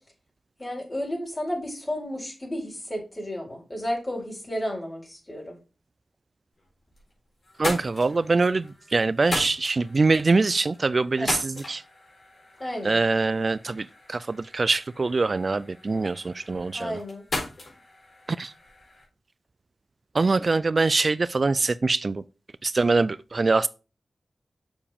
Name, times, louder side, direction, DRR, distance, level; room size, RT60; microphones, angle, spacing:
voice 1, 0.6-5.5 11.2-11.3 12.6-13.0 16.7-17.2, equal, 25° left, 4.6 m, -32 dB
sound 1, 6.6-7.1 7.4-19.0, left 2 dB, 60° left, 4.2 m, -38 dB
voice 2, 7.6-8.6 8.9-11.4 11.7-11.8 12.9-13.8 14.5-16.9 18.4-18.5 20.2-22.2 22.6-23.7, right 3 dB, 45° right, 0.3 m, -23 dB
7.1 x 7.0 x 3.5 m
wide cardioid pair, 85°, 0 cm